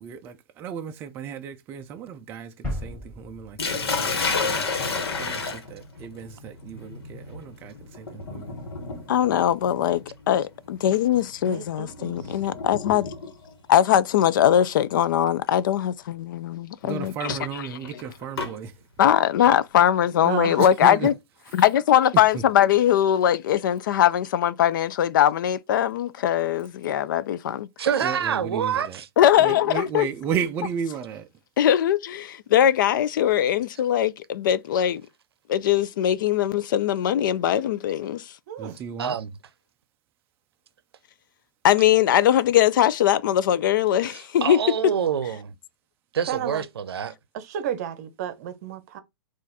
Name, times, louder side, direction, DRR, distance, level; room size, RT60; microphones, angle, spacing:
voice 1, 0.0-2.5 2.8-4.1 4.4-4.6 5.2-8.5 16.8-18.7 20.6-21.0 28.0-28.2 28.4-29.0 29.4-31.2 38.6-39.1, right 7 dB, 15° right, 0.3 m, -34 dB
sound 1, 2.6-5.3, left 1 dB, 10° left, 2.1 m, -37 dB
Sink (filling or washing), 3.6-13.5 14.6-15.0 15.5-15.6 17.0-18.5, left 4 dB, 80° left, 1.2 m, -31 dB
voice 2, 9.1-13.1 13.7-18.0 19.0-21.1 21.5-27.7 29.2-30.1 31.6-35.0 35.5-38.3 41.6-44.6, left 10 dB, 55° left, 0.4 m, -21 dB
voice 3, 11.5-12.3 20.2-20.6 38.5-38.8 46.3-46.6 47.3-49.0, right 9 dB, 40° right, 0.8 m, -32 dB
voice 4, 27.8-29.1 39.0-39.3 44.0-45.5 46.1-47.2, right 8 dB, 85° right, 0.6 m, -27 dB
4.0 x 2.5 x 4.0 m
hypercardioid pair, 145°, 13 cm